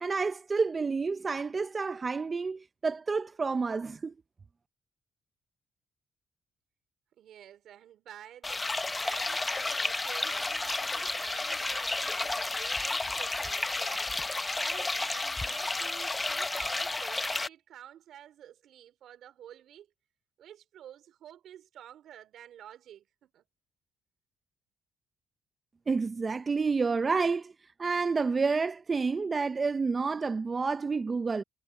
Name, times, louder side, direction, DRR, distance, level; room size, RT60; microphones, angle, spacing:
voice 1, 0.0-4.1 25.9-27.5 27.8-31.4, right 4 dB, 35° right, 0.6 m, -29 dB
voice 2, 7.2-19.9 20.4-23.4, right 10 dB, 75° right, 4.4 m, -50 dB
sound 1, 8.4-17.5, left 2 dB, 20° left, 0.9 m, -32 dB
cardioid pair, 90°, 0 cm